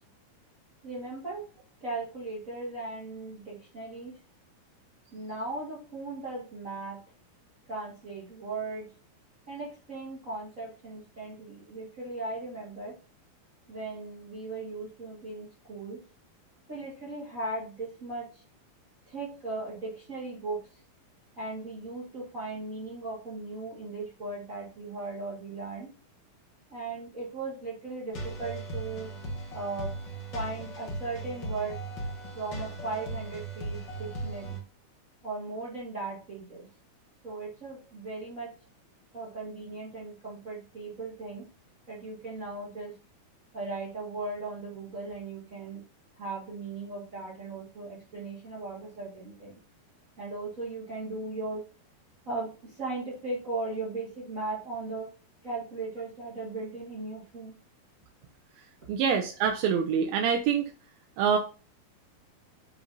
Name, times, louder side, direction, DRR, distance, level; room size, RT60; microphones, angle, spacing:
voice 1, 0.8-1.4 1.8-4.1 5.1-7.0 7.6-8.9 9.5-13.0 13.7-16.0 16.7-18.4 19.0-20.8 21.4-25.9 26.7-29.1 29.5-30.0 30.3-31.8 32.3-34.6 35.2-36.7 37.2-38.5 39.1-41.4 41.9-42.9 43.5-45.8 46.2-49.6 50.2-51.6 52.2-55.1 55.4-57.5, right 3 dB, 40° right, -4 dB, 1.1 m, -37 dB
sound 1, 28.1-34.6, right 2 dB, 50° left, 1.3 m, -37 dB
voice 2, 58.9-60.7 61.2-61.4, right 7 dB, 80° right, 4 dB, 2.5 m, -25 dB
10.0 x 4.1 x 2.6 m, 0.37 s
omnidirectional pair, 4.4 m